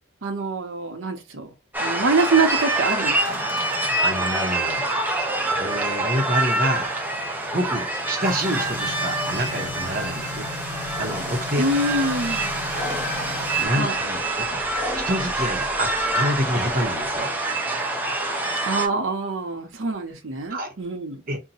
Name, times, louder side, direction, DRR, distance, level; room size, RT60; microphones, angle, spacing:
voice 1, 0.2-1.5 1.8-3.5 11.6-12.5 13.7-14.0 18.6-21.2, right 3 dB, 75° right, 0.8 m, -25 dB
sound 1, 1.7-18.9, right 2 dB, 10° right, 0.4 m, -26 dB
sound 2, 3.2-13.7, left 3 dB, 55° left, 0.7 m, -38 dB
voice 2, 4.0-4.9 5.5-6.9 7.5-10.5 11.0-11.6 13.6-14.6 14.9-15.9 16.1-17.3 20.5-20.7 21.3-21.4, equal, 45° right, 0.7 m, -27 dB
sound 3, 9.3-17.2, left 2 dB, 10° left, 0.8 m, -38 dB
2.7 x 2.2 x 3.9 m
head